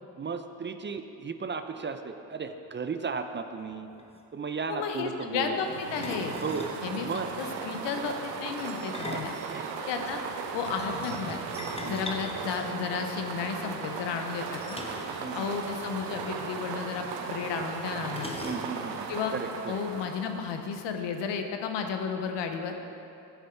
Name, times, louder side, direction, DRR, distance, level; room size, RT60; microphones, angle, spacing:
voice 1, 0.2-3.9 4.3-5.6 6.4-6.7 7.0-7.3 9.0-9.8 11.8-12.1 15.2-15.5 18.3-19.8, right 5 dB, 25° right, 8 dB, 0.5 m, -35 dB
sound 1, 3.7-3.8 4.0-4.2 6.0-6.8 8.7-10.2 11.6-13.2 14.7-15.2 15.5-15.6 15.9-16.1 17.1-17.2 18.1-18.9, left 2 dB, 15° left, 1.1 m, -40 dB
voice 2, 4.7-6.4 6.8-7.1 7.4-9.3 9.9-10.2 10.5-11.4 11.8-14.8 15.3-18.4 19.1-19.4 19.7-22.8, left 6 dB, 80° left, 5 dB, 0.8 m, -33 dB
sound 2, 5.4-20.9, right 5 dB, 80° right, 0.8 m, -37 dB
sound 3, 6.7-10.5 10.8-13.7 14.1-17.1, right 1 dB, 45° right, 1.9 m, -57 dB
7.3 x 7.1 x 4.5 m, 2.7 s
supercardioid pair, 55°, 42 cm